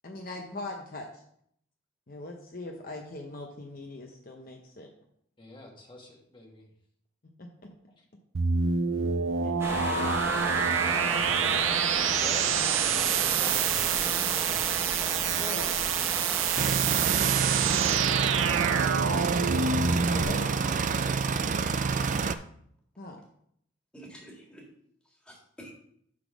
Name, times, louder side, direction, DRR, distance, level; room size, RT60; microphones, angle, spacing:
voice 1, 0.0-1.2 2.1-4.9 7.4-7.5 9.4-11.4 15.3-15.7 20.0-20.6 23.0-23.2, left 2 dB, 45° left, 2 dB, 0.8 m, -41 dB
voice 2, 5.4-6.7 7.9-8.0 11.9-14.8 16.7-18.6 21.3-21.6, left 1 dB, 25° left, 0 dB, 1.4 m, -45 dB
sound 1, 8.3-20.2, right 7 dB, 85° right, 0.6 m, -27 dB
sound 2, 9.6-16.7, right 1 dB, 15° right, 1.1 m, -34 dB
voice 3, 15.2-15.6 23.9-24.7 25.1-25.7, equal, 5° left, -2 dB, 1.9 m, -50 dB
sound 3, 16.6-22.3, right 5 dB, 40° right, 0.4 m, -28 dB
8.5 x 4.1 x 6.1 m, 0.69 s
head